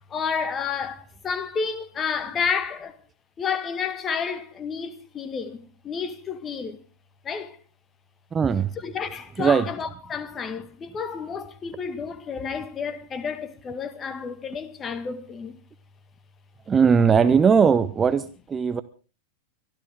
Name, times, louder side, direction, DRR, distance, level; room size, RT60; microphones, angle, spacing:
voice 1, 0.1-3.0 3.4-6.8 7.2-7.6 8.8-15.6, left 6 dB, 25° left, 1.8 m, -30 dB
voice 2, 8.3-8.7 9.4-9.7 16.7-18.8, right 6 dB, 20° right, 0.9 m, -19 dB
24.0 x 14.0 x 3.7 m
figure-of-eight pair, 90°, 0 cm